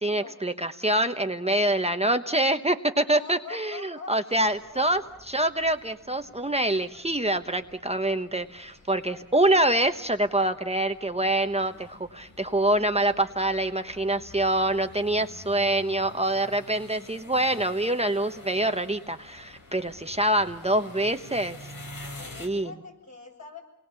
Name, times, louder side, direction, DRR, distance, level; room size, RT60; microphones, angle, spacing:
voice 1, 0.0-21.6 22.4-22.7, right 1 dB, 20° right, 7 dB, 1.0 m, -25 dB
voice 2, 3.0-5.1 8.7-8.9 22.2-23.6, left 4 dB, 55° left, 1 dB, 7.5 m, -45 dB
sound 1, 4.4-22.5, left 2 dB, 75° left, 3.7 m, -48 dB
28.5 x 21.0 x 7.0 m, 0.84 s
wide cardioid pair, 60°, 34 cm